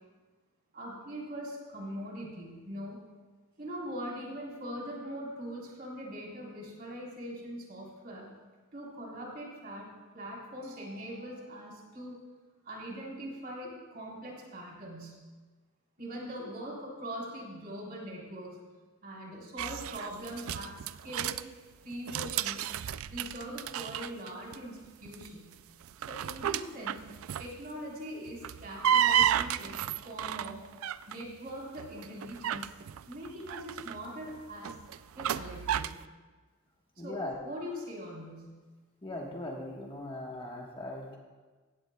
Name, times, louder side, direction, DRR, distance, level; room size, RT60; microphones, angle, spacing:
voice 1, 0.7-3.0 3.6-8.3 8.7-9.9 10.1-12.2 12.6-15.2 16.0-18.6 19.0-21.4 21.8-22.7 23.1-25.5 26.1-27.0 27.4-30.6 31.1-32.7 33.1-34.8 35.1-36.0 37.0-38.5, equal, 45° right, -3 dB, 3.8 m, -42 dB
sound 1, 19.6-21.4 21.9-24.6 24.8-25.3 25.8-27.6 28.3-31.2 31.8-36.0, right 10 dB, 75° right, 0.3 m, -32 dB
voice 2, 37.0-37.4 39.0-41.2, left 1 dB, 25° left, -1 dB, 1.3 m, -39 dB
16.5 x 16.0 x 2.3 m, 1.3 s
head